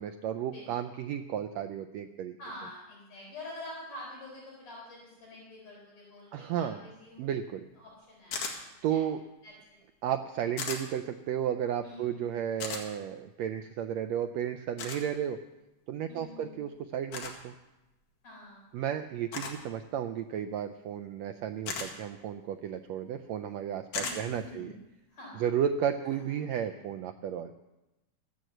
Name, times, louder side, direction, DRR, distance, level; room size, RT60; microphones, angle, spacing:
voice 1, 0.0-2.4 6.3-6.8 7.2-7.7 8.8-9.2 10.0-15.4 15.9-17.5 18.7-24.7 25.4-27.5, right 9 dB, 90° right, 7 dB, 1.5 m, -33 dB
voice 2, 2.4-7.3 7.8-8.4 8.7-9.0 9.4-9.8 11.8-12.3 16.1-16.6 18.2-18.8 24.0-24.7 25.1-25.5 26.0-26.8, left 1 dB, 50° left, -4 dB, 5.3 m, -47 dB
sound 1, 8.3-8.6 10.6-10.8 12.6-12.8 14.8-15.0 17.1-17.4 19.3-19.6 21.7-21.9 23.9-24.2, left 5 dB, 75° left, 3.4 m, -35 dB
14.0 x 9.4 x 7.9 m, 1.0 s
omnidirectional pair, 3.8 m